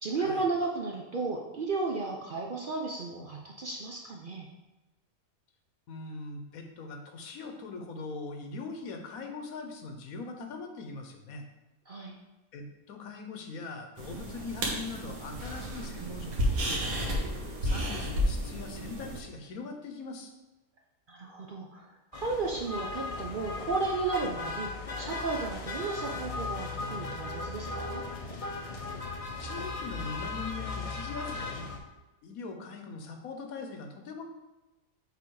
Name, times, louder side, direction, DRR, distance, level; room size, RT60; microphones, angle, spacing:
voice 1, 0.0-4.5 11.9-12.2 21.1-24.7 25.0-28.0, right 3 dB, 50° right, 0 dB, 0.6 m, -34 dB
voice 2, 5.9-11.4 12.5-17.2 17.6-20.3 29.4-31.7 32.2-34.2, left 3 dB, 80° left, 4 dB, 1.3 m, -41 dB
sound 1, 14.0-19.2, equal, 75° right, 1.6 m, -32 dB
sound 2, 22.1-31.8, left 3 dB, 40° left, 0.5 m, -37 dB
6.9 x 3.5 x 4.6 m, 1.1 s
omnidirectional pair, 1.5 m